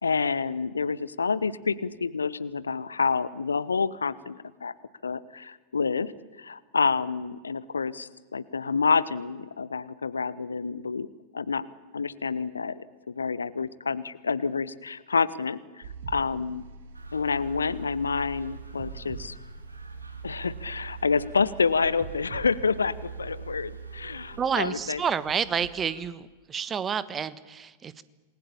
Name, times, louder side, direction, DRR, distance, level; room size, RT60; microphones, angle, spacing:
voice 1, 0.0-4.7 5.0-6.1 6.4-11.1 11.3-11.7 11.9-16.6 17.1-19.3 20.2-25.0, left 5 dB, 75° left, 18 dB, 1.0 m, -28 dB
sound 1, 15.8-24.5, right 5 dB, 60° right, 2.8 m, -42 dB
sound 2, 16.9-26.0, right 2 dB, 85° right, 2.5 m, -50 dB
voice 2, 24.4-28.0, right 7 dB, 20° right, 16 dB, 1.3 m, -29 dB
27.5 x 20.5 x 8.6 m, 1.3 s
figure-of-eight pair, 90°, 0 cm